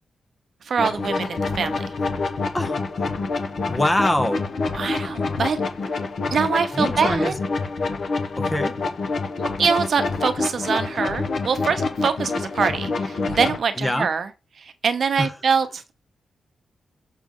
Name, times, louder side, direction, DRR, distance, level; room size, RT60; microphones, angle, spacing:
voice 1, 0.6-1.9 4.7-5.6 6.3-7.3 9.6-14.3 14.6-15.9, right 6 dB, 55° right, 0.9 m, -24 dB
sound 1, 0.8-13.6, left 3 dB, 55° left, 1.0 m, -27 dB
voice 2, 2.5-3.1 3.6-4.4 6.7-7.3 8.4-8.8 13.8-14.1 15.2-15.3, left 1 dB, 10° left, 0.7 m, -24 dB
6.6 x 6.1 x 3.8 m
wide cardioid pair, 160°, 0 cm